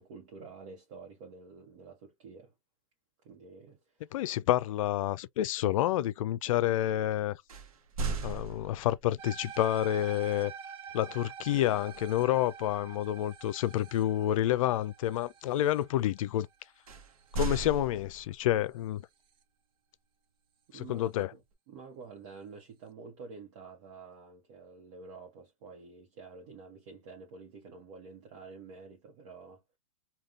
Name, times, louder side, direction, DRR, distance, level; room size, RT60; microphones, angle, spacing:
voice 1, 0.0-2.5 3.2-4.1 20.7-29.6, right 4 dB, 55° right, 1.0 m, -49 dB
voice 2, 4.1-7.4 8.2-10.5 10.9-16.5 17.3-19.0 20.7-21.3, left 13 dB, 70° left, 0.4 m, -29 dB
sound 1, 7.5-9.1 11.9-12.2 12.6-12.9 16.9-18.5, right 3 dB, 80° right, 0.9 m, -37 dB
sound 2, 9.2-17.6, right 7 dB, 25° right, 0.5 m, -47 dB
3.6 x 2.3 x 2.4 m
hypercardioid pair, 135°, 18 cm